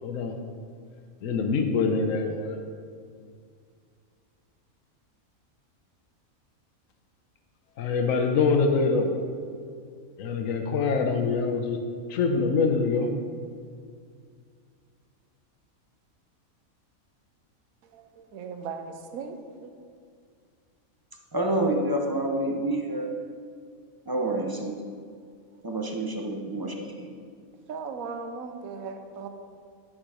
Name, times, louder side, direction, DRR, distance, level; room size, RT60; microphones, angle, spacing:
voice 1, 0.0-0.4 1.2-2.6 7.8-9.1 10.2-11.8 12.1-13.1, left 4 dB, 70° left, 5 dB, 1.2 m, -24 dB
voice 2, 17.8-19.7 25.5-25.6 27.7-29.3, right 5 dB, 85° right, 6 dB, 1.2 m, -38 dB
voice 3, 21.3-23.1 24.1-24.8 25.6-27.1, right 1 dB, 35° right, 1 dB, 0.3 m, -28 dB
10.5 x 5.1 x 4.9 m, 2.2 s
omnidirectional pair, 1.5 m